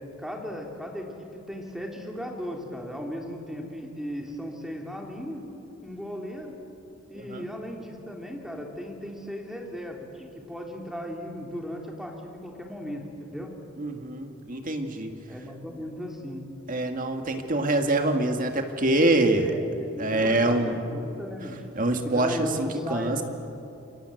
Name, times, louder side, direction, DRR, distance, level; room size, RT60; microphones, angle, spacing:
voice 1, 0.2-5.4 5.8-6.5 7.1-13.5 15.3-16.4 19.4-21.6 22.0-23.2, equal, ahead, 0 dB, 3.1 m, -36 dB
voice 2, 13.8-15.1 16.7-19.5 20.0-20.8 21.8-23.2, right 2 dB, 40° right, 5 dB, 2.1 m, -25 dB
28.5 x 24.0 x 7.9 m, 2.9 s
head